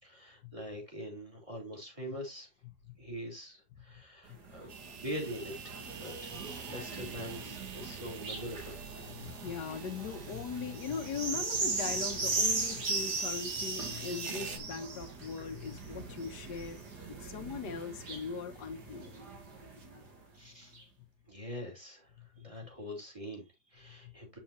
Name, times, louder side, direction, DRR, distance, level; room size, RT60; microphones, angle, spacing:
voice 1, 0.0-2.5 3.0-4.7 5.0-8.8 20.3-20.7 21.3-22.1 22.4-24.4, equal, 20° right, 4.0 m, -43 dB
sound 1, 4.3-20.1 20.7-20.8, right 3 dB, 75° right, 3.0 m, -38 dB
dentist's drill, 4.7-14.6, right 5 dB, 50° right, 1.3 m, -47 dB
voice 2, 9.1-16.8 17.2-19.1, left 6 dB, 80° left, 1.7 m, -40 dB
8.5 x 7.3 x 2.8 m
omnidirectional pair, 1.8 m